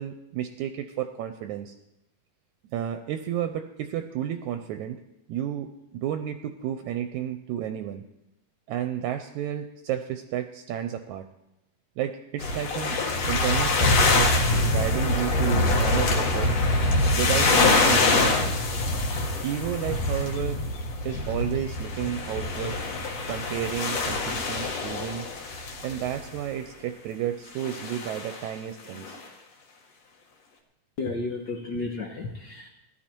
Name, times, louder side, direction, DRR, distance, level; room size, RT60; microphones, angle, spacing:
voice 1, 0.0-1.8 2.7-5.0 5.3-8.0 8.7-11.3 12.0-16.5 17.1-18.7 19.4-20.7 21.1-22.8 23.3-25.3 25.8-29.2, right 10 dB, 75° right, 8 dB, 1.9 m, -32 dB
sound 1, 12.4-26.4 27.6-28.4 29.0-29.2, left 2 dB, 60° left, 2.5 m, -24 dB
voice 2, 31.0-32.7, left 3 dB, 85° left, 2 dB, 0.9 m, -32 dB
15.5 x 12.0 x 4.5 m, 0.90 s
omnidirectional pair, 3.6 m